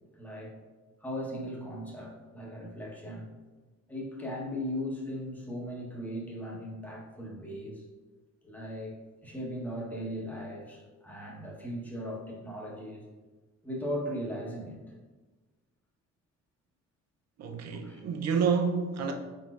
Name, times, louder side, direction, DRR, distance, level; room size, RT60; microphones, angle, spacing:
voice 1, 0.2-0.6 1.0-3.3 3.9-7.8 8.4-9.0 9.2-13.0 13.6-14.8 17.7-18.0, equal, 5° left, -3 dB, 1.1 m, -38 dB
voice 2, 17.4-19.1, right 6 dB, 60° right, 5 dB, 0.6 m, -28 dB
4.3 x 4.0 x 2.4 m, 1.3 s
cardioid pair, 90°, 30 cm